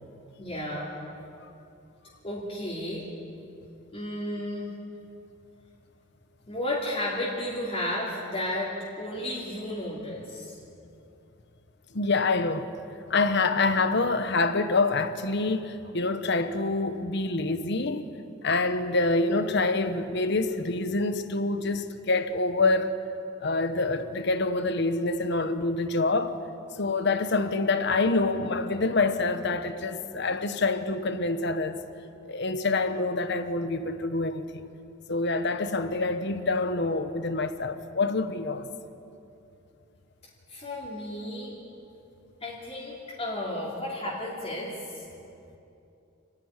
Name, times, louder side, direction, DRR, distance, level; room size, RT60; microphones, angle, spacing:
voice 1, 0.4-0.9 2.2-3.0 3.9-4.7 6.5-10.5 40.5-41.5 42.4-45.0, left 1 dB, 30° left, 3.4 m, -33 dB
voice 2, 11.9-12.7 13.1-18.1 18.4-23.0 23.4-26.3 26.8-31.8 32.3-34.7 35.1-38.7, left 3 dB, 60° left, 1.2 m, -26 dB
28.5 x 11.0 x 9.8 m
head